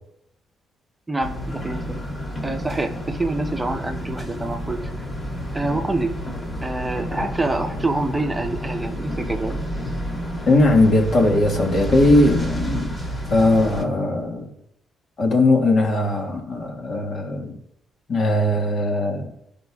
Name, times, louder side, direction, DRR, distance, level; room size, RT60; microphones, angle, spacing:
voice 1, 1.1-2.0 2.4-4.9 5.5-6.1 6.6-9.6, right 2 dB, 15° right, 0.9 m, -26 dB
sound 1, 1.2-13.8, equal, 30° left, 1.9 m, -30 dB
voice 2, 10.5-13.0 13.3-14.5 15.2-17.6 18.1-19.4, left 2 dB, 55° left, 1.7 m, -19 dB
12.5 x 5.2 x 2.4 m
cardioid pair, 75°, 0 cm